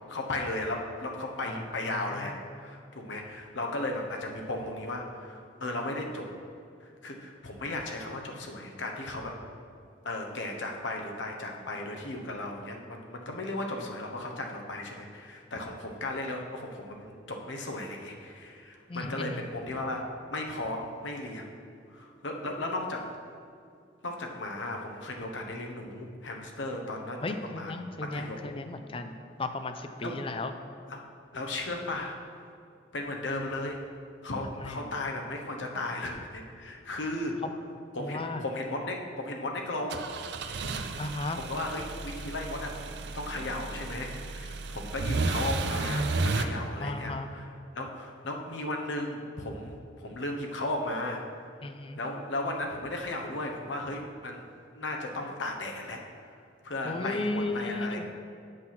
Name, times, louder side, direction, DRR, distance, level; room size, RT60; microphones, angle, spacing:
voice 1, 0.1-6.3 6.8-9.3 10.0-20.0 20.3-21.6 21.9-23.0 24.0-28.6 30.0-30.2 30.9-31.1 31.3-32.5 32.9-33.8 34.2-37.4 37.9-40.0 41.3-47.5 47.7-51.2 51.9-54.4 54.7-56.0 56.6-58.1, left 2 dB, 85° left, 2 dB, 1.1 m, -35 dB
voice 2, 1.5-2.4 18.9-19.8 27.2-30.5 34.6-34.9 37.4-37.5 38.0-38.4 41.0-41.4 46.8-47.3 51.6-52.0 56.9-58.1, left 2 dB, 30° left, 8 dB, 0.5 m, -35 dB
sound 1, 39.9-46.4, right 3 dB, 65° right, 0.5 m, -33 dB
7.9 x 6.0 x 5.8 m, 2.4 s
head